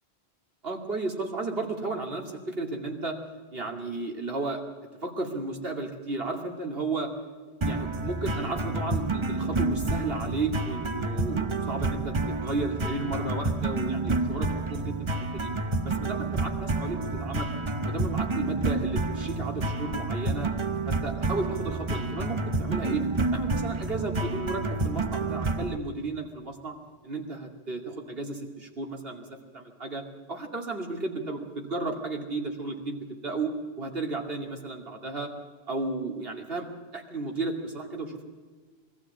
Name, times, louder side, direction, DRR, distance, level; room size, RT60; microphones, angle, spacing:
voice 1, 0.6-3.2 3.5-4.6 5.0-7.1 7.6-12.1 12.4-15.1 15.3-15.5 15.8-17.5 17.8-20.5 20.9-23.0 23.3-26.7 27.0-30.0 30.3-33.5 33.8-35.3 35.7-36.7 36.9-38.2, right 3 dB, 65° right, 2 dB, 2.8 m, -33 dB
sound 1, 7.6-25.8, right 3 dB, 30° right, 0.8 m, -29 dB
21.5 x 14.5 x 8.4 m, 1.5 s
omnidirectional pair, 1.1 m